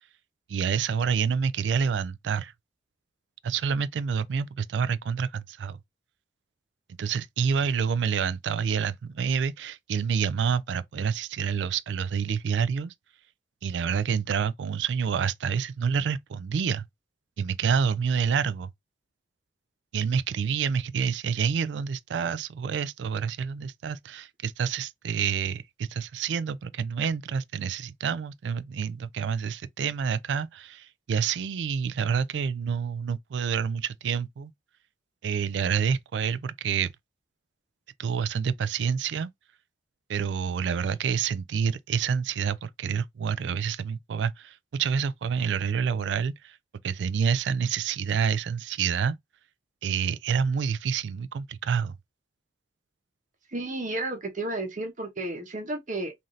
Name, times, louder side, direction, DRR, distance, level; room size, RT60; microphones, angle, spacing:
voice 1, 0.5-2.5 3.4-5.8 7.0-12.9 13.6-16.9 17.4-18.7 19.9-34.5 35.2-36.9 38.0-39.3 40.1-46.6 46.8-49.2 49.8-52.0, right 6 dB, 75° right, 0.3 m, -28 dB
voice 2, 53.5-56.1, right 2 dB, 45° right, 0.9 m, -32 dB
3.8 x 2.6 x 3.1 m
head